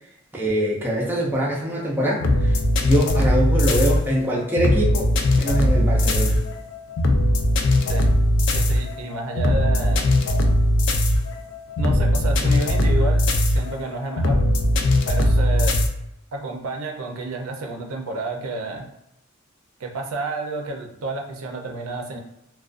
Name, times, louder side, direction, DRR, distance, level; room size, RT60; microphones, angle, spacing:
voice 1, 0.3-2.5 2.8-5.1 5.4-6.4, equal, 10° right, -4 dB, 0.5 m, -23 dB
sound 1, 2.2-15.9, left 1 dB, 60° left, 0.3 m, -20 dB
voice 2, 8.5-10.2 11.8-14.4 15.1-15.8 16.3-18.9 19.8-22.2, right 2 dB, 80° right, 2 dB, 0.5 m, -30 dB
2.4 x 2.2 x 2.4 m, 0.85 s
head